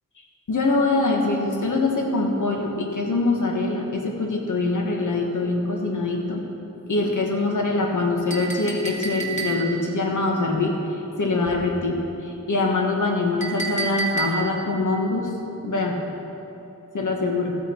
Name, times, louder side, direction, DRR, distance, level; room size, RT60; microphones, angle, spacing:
voice 1, 0.5-6.4 6.9-10.7 11.2-12.0 12.5-15.3 15.6-16.0 16.9-17.6, left 3 dB, 75° left, 1 dB, 1.6 m, -23 dB
Chink clink, 8.3-9.9 13.4-14.7, right 4 dB, 25° left, 1.5 m, -29 dB
14.0 x 8.6 x 4.6 m, 2.9 s
wide cardioid pair, 90°, 31 cm